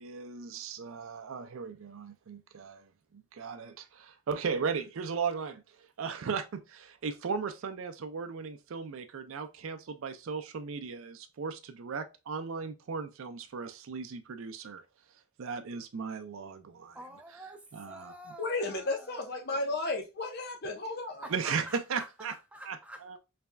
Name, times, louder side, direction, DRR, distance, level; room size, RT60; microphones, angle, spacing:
voice 1, 0.0-14.8 15.4-17.0 17.7-18.1 21.3-22.3 22.7-22.8 23.1-23.2, right 5 dB, 70° right, 0.4 m, -37 dB
voice 2, 16.9-19.6 21.2-23.2, right 1 dB, 5° right, 0.5 m, -47 dB
voice 3, 18.4-21.3, left 2 dB, 45° left, 0.7 m, -33 dB
4.0 x 3.3 x 2.3 m
head